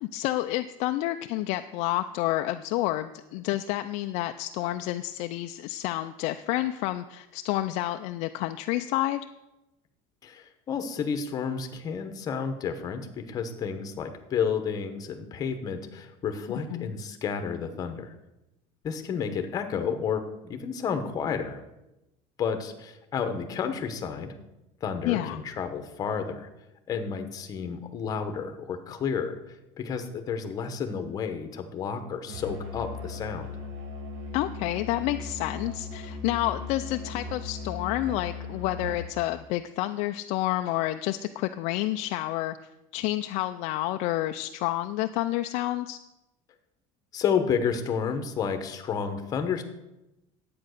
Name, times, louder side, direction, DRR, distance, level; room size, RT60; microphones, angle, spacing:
voice 1, 0.0-9.2 16.7-16.9 25.0-25.4 34.3-42.6 42.9-46.0, left 15 dB, 50° left, 7 dB, 0.4 m, -29 dB
voice 2, 10.2-18.1 18.8-20.2 20.5-21.6 22.4-24.3 24.8-26.5 26.9-29.4 29.8-33.5 47.1-49.6, left 6 dB, 25° left, 7 dB, 1.0 m, -31 dB
Musical instrument, 32.3-39.2, left 3 dB, 55° right, 2.0 m, -38 dB
10.5 x 8.6 x 6.5 m, 0.95 s
cardioid pair, 180°, 15 cm